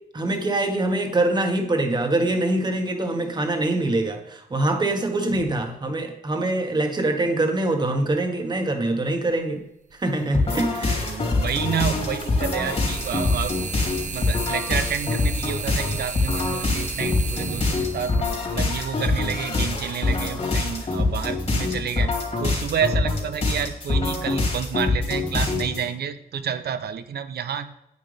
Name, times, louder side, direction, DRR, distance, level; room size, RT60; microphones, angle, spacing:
voice 1, 0.1-9.6 10.0-11.3, right 2 dB, 25° right, 4 dB, 1.6 m, -24 dB
sound 1, 9.9-10.0 11.4-19.3, right 5 dB, 50° right, 0.9 m, -35 dB
sound 2, 10.3-25.9, left 3 dB, 40° left, 3.4 m, -25 dB
voice 2, 11.0-18.2 18.5-22.1 22.4-27.8, right 8 dB, 80° right, 11 dB, 0.8 m, -29 dB
9.7 x 9.4 x 3.4 m, 0.82 s
wide cardioid pair, 130°, 16 cm